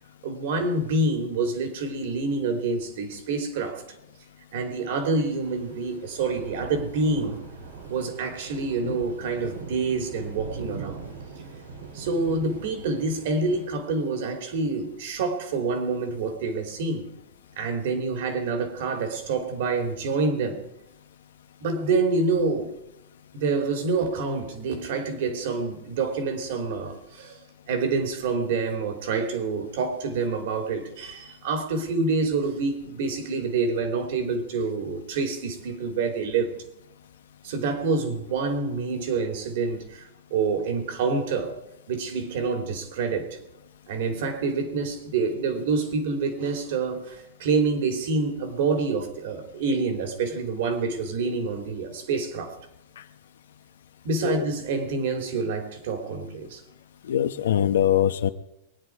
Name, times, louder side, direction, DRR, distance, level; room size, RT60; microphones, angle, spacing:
voice 1, 0.2-3.8 4.5-7.4 7.9-11.0 11.9-17.1 17.6-20.6 21.6-22.7 23.3-27.4 27.7-36.5 37.4-40.0 40.3-41.6 41.9-43.4 43.9-52.6 54.0-56.6, right 4 dB, 55° right, 3.3 m, -27 dB
sound 1, 4.6-13.7, right 5 dB, 85° right, 3.2 m, -41 dB
voice 2, 57.0-58.3, left 10 dB, 85° left, 1.0 m, -23 dB
23.0 x 10.0 x 4.8 m
supercardioid pair, 165°, 0 cm